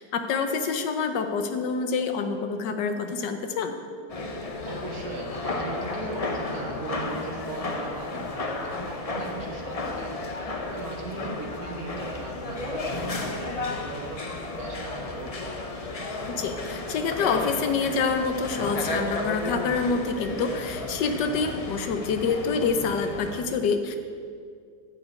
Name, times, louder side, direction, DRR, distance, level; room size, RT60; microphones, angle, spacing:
voice 1, 0.0-3.7 16.4-24.0, left 5 dB, 90° left, 7 dB, 1.5 m, -27 dB
sound 1, 4.1-23.4, left 2 dB, 50° left, 0.4 m, -33 dB
voice 2, 4.7-15.6, right 2 dB, 60° right, 0 dB, 1.9 m, -39 dB
10.0 x 5.1 x 8.3 m, 2.2 s
omnidirectional pair, 1.8 m